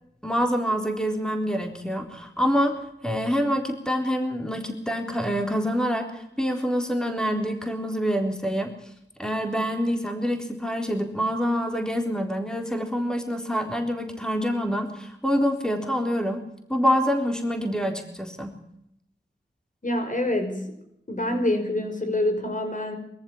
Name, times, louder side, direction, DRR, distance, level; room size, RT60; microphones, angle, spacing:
voice 1, 0.2-8.7 9.2-16.4 16.7-18.5, equal, 5° left, 4 dB, 3.9 m, -26 dB
voice 2, 19.8-20.6 21.1-23.0, left 1 dB, 45° left, 5 dB, 5.7 m, -26 dB
23.5 x 14.5 x 8.6 m, 0.79 s
wide cardioid pair, 55°, 19 cm